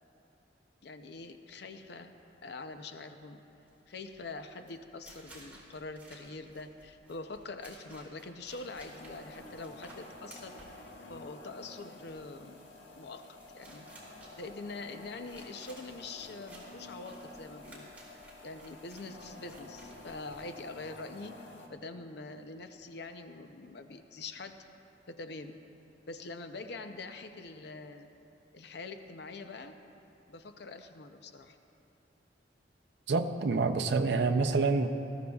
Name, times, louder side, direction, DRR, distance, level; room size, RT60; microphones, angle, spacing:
voice 1, 0.8-2.2 2.4-3.4 3.9-12.6 12.9-13.9 14.4-17.9 18.4-21.4 21.7-24.6 25.1-25.5 26.1-28.1 28.5-29.7 30.3-31.6, left 3 dB, 65° left, 7 dB, 0.6 m, -44 dB
sound 1, 3.7-21.0, right 1 dB, 10° right, 2.7 m, -56 dB
sound 2, 8.5-21.7, left 2 dB, 90° left, 1.3 m, -51 dB
voice 2, 33.1-34.9, right 3 dB, 65° right, 5 dB, 0.5 m, -27 dB
19.5 x 13.5 x 2.3 m, 2.9 s
head